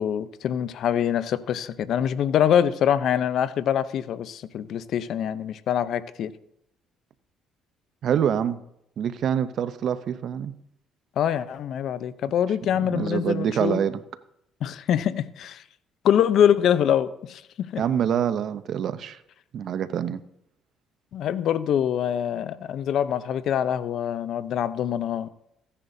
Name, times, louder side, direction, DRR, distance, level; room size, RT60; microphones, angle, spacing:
voice 1, 0.0-6.3 11.2-13.8 14.6-15.6 16.0-17.8 21.1-25.3, left 9 dB, 65° left, 14 dB, 0.6 m, -24 dB
voice 2, 8.0-8.6 9.0-10.5 12.8-14.0 17.8-19.2 19.5-20.2, right 9 dB, 60° right, 13 dB, 0.6 m, -25 dB
15.5 x 9.9 x 2.7 m, 0.77 s
cardioid pair, 90°, 0 cm